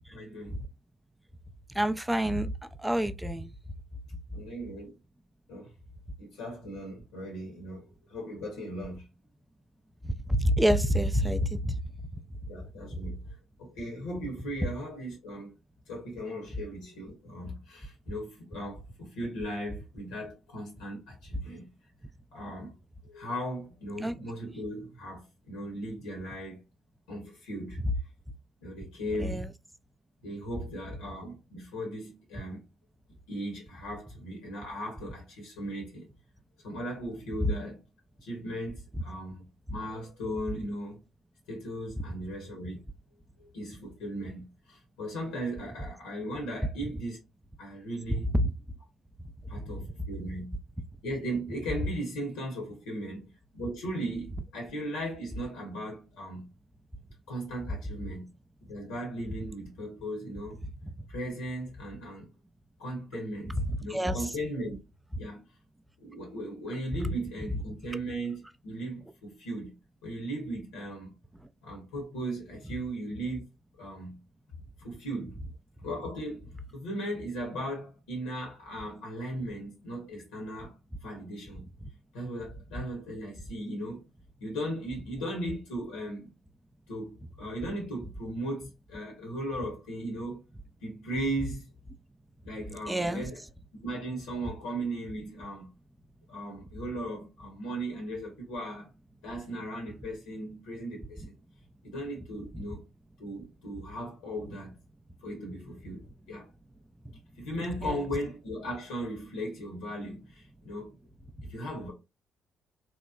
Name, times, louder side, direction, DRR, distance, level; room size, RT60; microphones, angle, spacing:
voice 1, 0.1-0.6 4.3-4.9 5.5-5.7 6.2-9.0 12.5-13.2 13.6-15.5 15.9-21.7 22.3-22.8 23.1-26.6 27.1-27.8 28.6-29.4 30.2-32.6 33.3-36.1 36.6-37.8 38.2-41.0 41.5-42.8 43.4-47.2 47.6-48.3 49.5-50.5 51.0-56.5 57.3-58.3 58.7-60.7 61.1-62.3 62.8-64.8 65.2-65.4 66.0-69.7 70.0-71.1 71.6-73.4 73.8-74.2 74.8-75.4 75.8-76.4 76.7-80.7 81.0-81.7 82.1-84.1 84.4-86.3 86.9-90.4 90.8-91.7 92.4-93.4 93.8-95.7 96.3-98.9 99.2-101.3 101.8-102.9 103.2-104.8 105.2-106.5 107.4-110.9 111.4-111.9, right 1 dB, 70° left, 0.8 m, -37 dB
voice 2, 1.7-2.5 2.8-3.5 10.0-11.8 12.9-13.0 24.0-24.2 29.2-29.5 48.4-48.5 49.5-49.6 60.8-60.9 63.7-64.2 92.9-93.3 107.8-108.0, equal, 10° right, 0.3 m, -27 dB
2.8 x 2.1 x 2.4 m
figure-of-eight pair, 45°, 0 cm